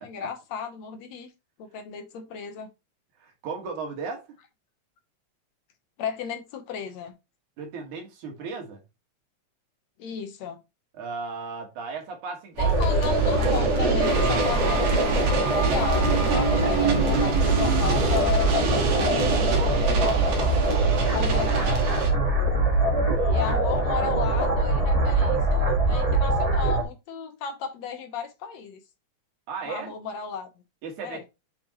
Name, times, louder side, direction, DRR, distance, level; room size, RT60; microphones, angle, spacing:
voice 1, 0.0-1.3 1.6-2.7 6.0-7.1 10.0-10.6 12.6-15.1 15.4-19.3 21.1-22.1 23.3-28.8 29.6-30.5 31.0-31.2, left 7 dB, 70° left, 2.1 m, -34 dB
voice 2, 3.2-4.2 7.6-8.8 10.9-12.9 19.6-20.4 23.1-23.5 29.5-29.9 30.8-31.2, right 5 dB, 90° right, 3.1 m, -35 dB
sound 1, 12.6-26.8, right 2 dB, 50° right, 0.4 m, -23 dB
sound 2, 12.6-22.1, right 3 dB, 65° right, 2.7 m, -27 dB
7.0 x 5.1 x 2.9 m
omnidirectional pair, 3.3 m